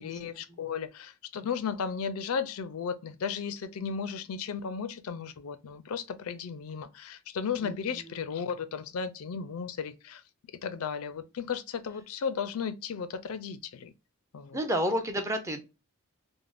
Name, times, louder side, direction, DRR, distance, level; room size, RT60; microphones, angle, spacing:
voice 1, 0.0-10.2 10.6-13.9 14.3-14.6, left 6 dB, 80° left, 0.4 m, -35 dB
voice 2, 7.6-8.2 14.5-15.6, equal, 15° right, 0.5 m, -31 dB
3.3 x 2.1 x 2.4 m
head